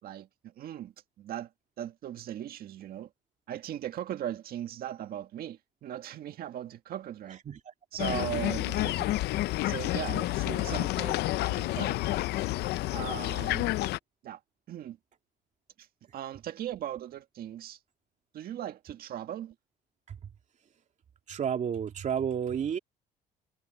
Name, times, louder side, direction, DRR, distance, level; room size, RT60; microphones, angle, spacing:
voice 1, 0.0-1.5 1.8-3.1 3.5-7.4 7.9-9.1 9.6-12.0 12.9-13.7 14.2-14.4 14.7-15.0 15.8-15.9 16.1-17.8 18.3-19.6, right 11 dB, 60° right, 1.8 m, -38 dB
sound 1, 8.0-14.0, left 17 dB, 75° left, 0.5 m, -29 dB
voice 2, 10.5-10.8 20.1-20.2 21.3-22.8, right 8 dB, 45° right, 2.9 m, -31 dB
cardioid pair, 110°, 17 cm